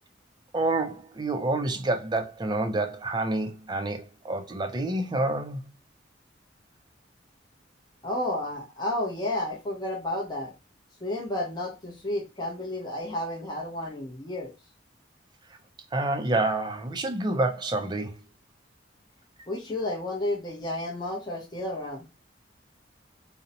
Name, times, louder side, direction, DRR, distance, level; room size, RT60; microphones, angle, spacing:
voice 1, 0.5-5.6 15.9-18.1, right 2 dB, 25° right, 0.4 m, -28 dB
voice 2, 8.0-10.5 11.0-14.5 19.5-22.1, left 1 dB, 25° left, 0.6 m, -31 dB
2.5 x 2.0 x 2.7 m
head